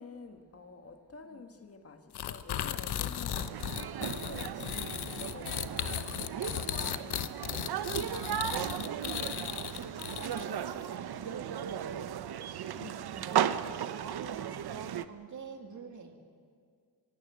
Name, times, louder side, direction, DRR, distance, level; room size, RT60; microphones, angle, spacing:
voice 1, 0.0-7.3 12.8-13.7, left 4 dB, 35° left, 6 dB, 1.6 m, -50 dB
sound 1, 2.1-10.6, left 10 dB, 70° left, 1.0 m, -36 dB
sound 2, 3.3-15.1, right 9 dB, 70° right, 0.9 m, -36 dB
voice 2, 5.7-6.6 7.9-8.9 9.5-12.2 13.2-13.6 13.9-16.2, right 5 dB, 45° right, 4 dB, 2.7 m, -48 dB
25.0 x 16.5 x 9.4 m, 2.1 s
wide cardioid pair, 135°, 40 cm